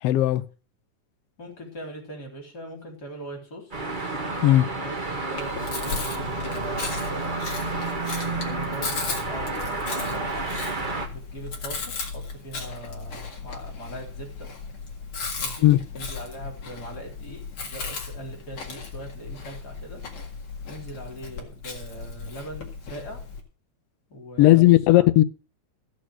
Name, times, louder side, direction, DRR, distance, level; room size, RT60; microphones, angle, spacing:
voice 1, 0.0-0.4 4.4-4.7 15.6-15.8 24.4-25.2, left 15 dB, 75° left, 1.5 m, -16 dB
voice 2, 1.4-3.8 4.8-10.2 11.1-14.5 15.4-15.7 15.9-20.0 20.6-23.2 24.1-25.1, right 1 dB, 30° left, 4.0 m, -41 dB
sound 1, 3.7-11.1, right 3 dB, 35° right, 0.7 m, -30 dB
Chewing mastication, 5.4-23.4, left 5 dB, 50° left, 2.6 m, -36 dB
14.5 x 6.5 x 6.1 m
omnidirectional pair, 3.4 m